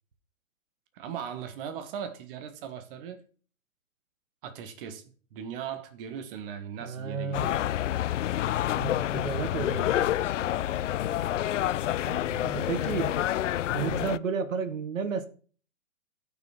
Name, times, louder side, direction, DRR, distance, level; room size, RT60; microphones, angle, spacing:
voice 1, 0.9-3.2 4.4-7.5, right 8 dB, 40° right, 1.8 m, -38 dB
voice 2, 6.8-7.6 8.8-10.1 12.1-13.2 13.7-15.3, right 6 dB, 65° right, 1.7 m, -33 dB
sound 1, 7.3-14.2, left 12 dB, 60° left, 0.5 m, -28 dB
15.0 x 6.2 x 4.3 m
figure-of-eight pair, 120°, 41 cm